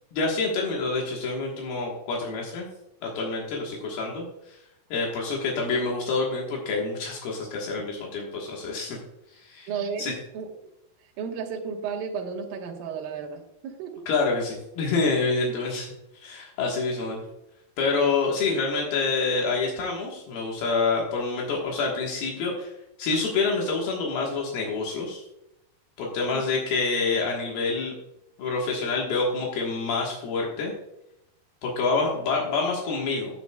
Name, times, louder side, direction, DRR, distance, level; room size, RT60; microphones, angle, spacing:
voice 1, 0.1-2.7 3.0-4.6 4.9-9.0 9.3-9.7 10.0-10.1 14.1-17.2 17.8-22.7 23.0-25.2 26.0-28.0 28.4-30.7 31.6-33.4, left 4 dB, 75° left, -2 dB, 3.3 m, -27 dB
voice 2, 9.7-10.5 11.0-14.0 26.3-26.4, right 6 dB, 70° right, 1 dB, 3.0 m, -33 dB
15.0 x 7.9 x 2.3 m, 0.85 s
omnidirectional pair, 4.5 m